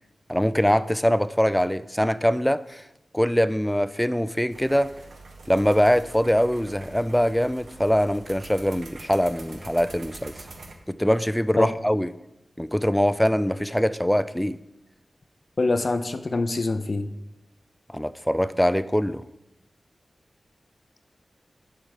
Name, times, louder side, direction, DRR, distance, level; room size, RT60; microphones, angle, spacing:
voice 1, 0.3-2.8 3.1-4.9 5.5-10.3 10.9-12.1 12.6-14.6 17.9-19.2, equal, 5° left, 0.4 m, -23 dB
sound 1, 4.5-10.7, right 3 dB, 80° right, 1.1 m, -45 dB
voice 2, 15.6-17.1, left 3 dB, 55° left, 0.5 m, -25 dB
7.3 x 4.8 x 6.6 m
cardioid pair, 45°, 0 cm